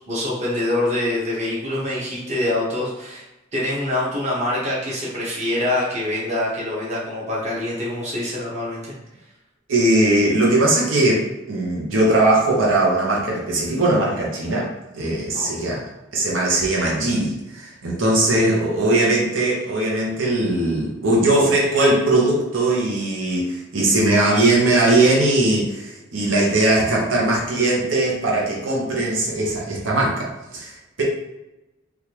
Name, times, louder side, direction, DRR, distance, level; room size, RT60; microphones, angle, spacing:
voice 1, 0.1-3.2 3.5-8.9 15.3-15.8 18.3-18.4, left 1 dB, 35° right, -6 dB, 1.0 m, -25 dB
voice 2, 9.7-15.9 16.1-31.0, right 2 dB, 90° right, -3 dB, 0.9 m, -20 dB
3.4 x 2.4 x 2.9 m, 0.96 s
head